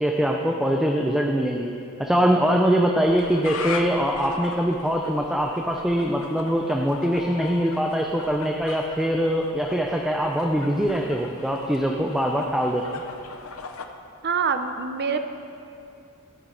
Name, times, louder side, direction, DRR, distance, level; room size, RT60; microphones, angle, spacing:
voice 1, 0.0-1.7 2.0-13.0, equal, ahead, 1 dB, 0.6 m, -23 dB
sound 1, 3.0-13.9, left 4 dB, 65° left, 0.7 m, -39 dB
voice 2, 14.2-15.2, right 5 dB, 50° right, 8 dB, 0.7 m, -25 dB
14.0 x 9.3 x 4.5 m, 2.6 s
head